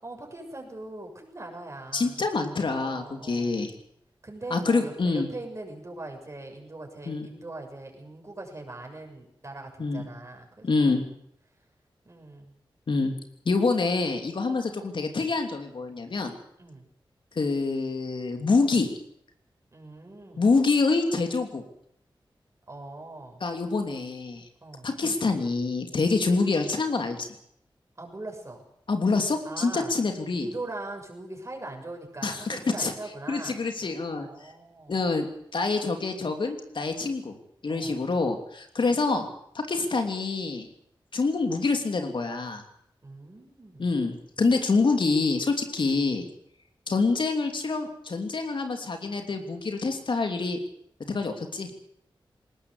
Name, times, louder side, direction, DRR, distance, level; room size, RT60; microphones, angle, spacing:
voice 1, 0.0-2.2 2.7-3.6 4.2-10.9 12.1-12.6 16.6-16.9 19.7-20.5 22.7-23.4 24.6-24.9 28.0-28.6 29.4-29.9 30.3-33.6 34.2-35.0 37.7-38.0 43.0-44.0, right 2 dB, 35° right, 1 dB, 6.8 m, -41 dB
voice 2, 1.9-3.7 4.5-5.3 7.1-7.3 9.8-10.1 10.6-11.0 12.9-13.1 13.4-16.3 17.4-18.9 20.4-21.6 23.4-24.4 24.8-27.3 28.9-30.5 32.2-32.9 33.3-34.5 34.9-35.3 35.5-37.4 37.6-39.3 39.5-40.7 41.1-42.6 43.8-46.2 46.9-50.6 51.1-51.7, left 3 dB, 65° left, 5 dB, 3.0 m, -26 dB
21.0 x 18.5 x 8.1 m, 0.72 s
wide cardioid pair, 95°, 9 cm